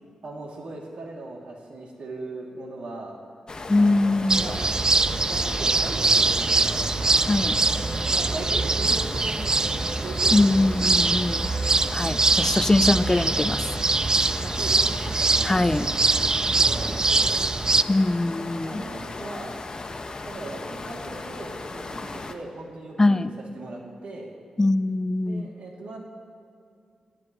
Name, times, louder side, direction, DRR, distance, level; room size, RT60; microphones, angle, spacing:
voice 1, 0.2-3.1 3.7-4.6 5.0-9.4 10.0-11.3 14.4-17.5 18.6-19.5 20.2-24.3 25.2-26.0, right 2 dB, 75° right, -2 dB, 2.7 m, -39 dB
sound 1, 3.5-22.4, left 3 dB, 40° left, 1.1 m, -36 dB
voice 2, 3.7-4.5 7.3-7.6 10.3-11.5 11.9-13.8 15.4-15.9 17.9-18.8 23.0-23.3 24.6-25.5, left 2 dB, 25° left, 13 dB, 0.5 m, -22 dB
sound 2, 4.3-17.8, right 3 dB, 35° right, 0.4 m, -23 dB
25.0 x 15.0 x 3.1 m, 2.4 s
cardioid pair, 65°, 2 cm